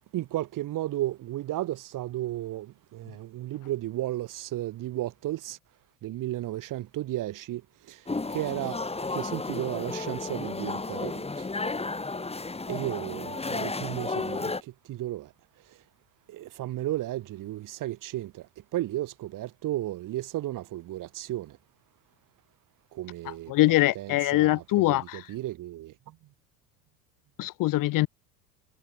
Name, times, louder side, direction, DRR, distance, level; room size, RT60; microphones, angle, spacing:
voice 1, 0.1-5.6 6.0-11.5 12.7-15.3 15.6-15.8 16.3-21.6 22.9-23.5 23.9-26.2, right 15 dB, 40° right, 1.0 m, -34 dB
sound 1, 8.1-14.6, left 3 dB, 10° left, 2.5 m, -33 dB
voice 2, 23.5-25.3 27.4-28.1, left 18 dB, 40° left, 0.7 m, -23 dB
hypercardioid pair, 75°, 49 cm